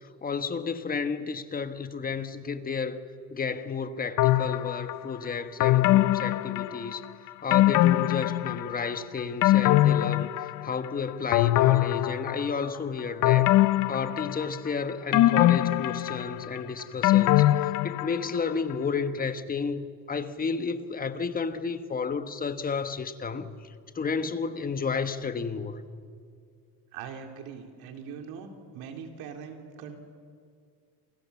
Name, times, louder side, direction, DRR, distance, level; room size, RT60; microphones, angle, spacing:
voice 1, 0.2-3.0 3.3-7.0 7.4-10.3 10.6-13.5 13.9-23.6 23.9-25.9, left 5 dB, 25° left, 1.3 m, -32 dB
sound 1, 4.2-5.0 5.6-7.0 7.5-8.8 9.2-10.9 11.3-12.7 13.2-14.7 15.1-18.4 18.7-18.8, left 15 dB, 55° left, 0.6 m, -22 dB
voice 2, 26.9-30.0, right 6 dB, 80° right, 3.7 m, -41 dB
28.5 x 28.0 x 7.1 m
cardioid pair, 150°, 37 cm